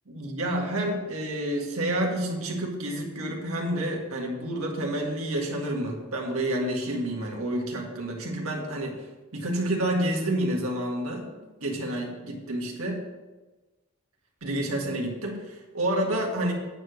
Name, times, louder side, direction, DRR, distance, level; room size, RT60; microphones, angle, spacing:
voice 1, 0.1-9.0 9.3-11.3 11.6-13.0 14.4-16.5, right 1 dB, 75° right, 0 dB, 1.8 m, -29 dB
8.9 x 4.9 x 6.4 m, 1.2 s
head